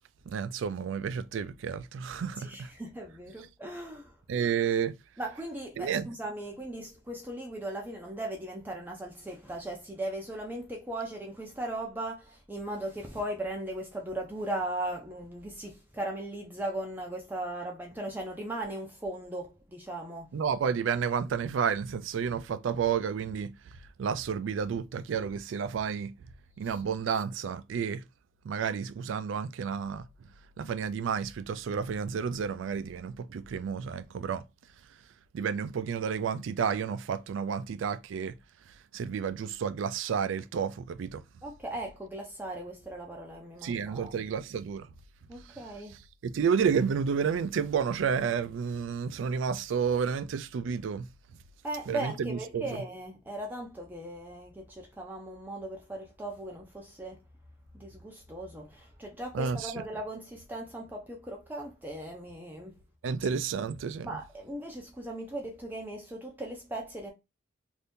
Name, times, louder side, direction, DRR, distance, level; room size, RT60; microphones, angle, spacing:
voice 1, 0.3-2.7 4.3-4.9 5.8-6.1 20.3-23.5 24.0-26.1 26.6-28.0 28.4-30.0 30.6-34.4 35.3-38.3 38.9-41.2 43.6-44.9 46.2-51.1 51.9-52.7 59.3-59.7 63.0-64.1, right 6 dB, 85° right, 0.3 m, -31 dB
voice 2, 2.4-4.2 5.2-20.3 26.6-26.8 41.4-44.1 45.3-46.0 51.6-57.2 57.7-62.8 64.0-67.1, right 1 dB, 10° right, 0.5 m, -38 dB
2.7 x 2.6 x 3.5 m
head